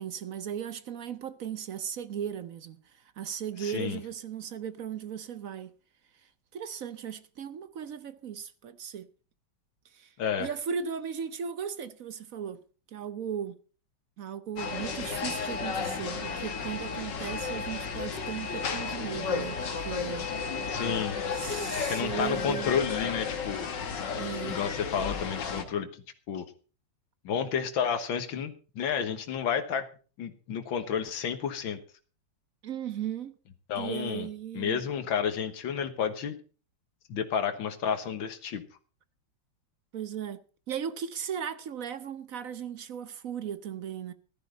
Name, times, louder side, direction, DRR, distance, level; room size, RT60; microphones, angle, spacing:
voice 1, 0.0-5.7 6.2-9.1 9.8-12.6 12.9-13.6 14.2-20.3 21.3-22.8 24.1-24.6 32.6-33.4 33.7-34.8 39.9-40.4 40.7-44.1, right 8 dB, 60° right, 1.0 m, -37 dB
voice 2, 3.6-4.0 10.2-10.5 20.7-21.2 21.8-23.7 24.5-26.5 27.2-29.9 30.2-31.8 33.7-34.3 34.5-36.4 37.1-38.6, left 7 dB, 85° left, 2.0 m, -31 dB
sound 1, 14.6-25.6, left 5 dB, 65° left, 2.3 m, -33 dB
15.5 x 13.0 x 3.9 m
omnidirectional pair, 2.1 m